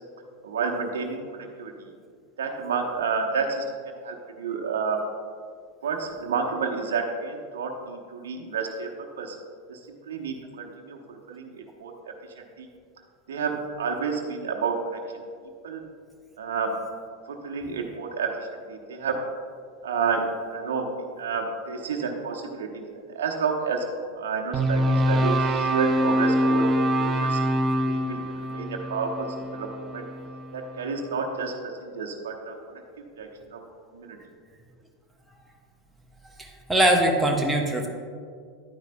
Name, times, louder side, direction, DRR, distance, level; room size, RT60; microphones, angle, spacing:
voice 1, 0.4-1.9 2.4-3.7 4.0-5.0 5.8-8.9 9.2-9.4 9.7-11.9 12.4-12.7 13.3-15.3 15.6-15.8 16.4-16.8 17.3-19.2 19.8-20.9 21.2-23.8 24.1-30.0 30.5-32.8 33.2-33.6 33.9-34.2, right 5 dB, 75° right, 1 dB, 0.9 m, -30 dB
sound 1, 24.5-30.8, equal, 30° right, 0.6 m, -25 dB
voice 2, 36.4-37.9, right 1 dB, 5° right, 0 dB, 1.0 m, -22 dB
10.5 x 9.1 x 2.2 m, 2.1 s
hypercardioid pair, 90°, 0 cm